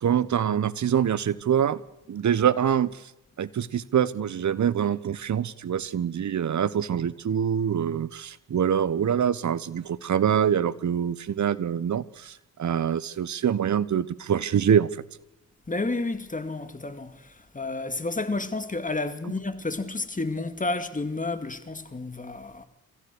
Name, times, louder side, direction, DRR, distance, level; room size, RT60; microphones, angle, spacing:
voice 1, 0.0-1.8 2.1-2.9 3.4-12.3 12.6-14.9, right 8 dB, 45° right, 1.3 m, -25 dB
voice 2, 15.7-22.7, left 3 dB, 20° left, 2.5 m, -31 dB
27.5 x 15.0 x 6.5 m
hypercardioid pair, 50°, 40 cm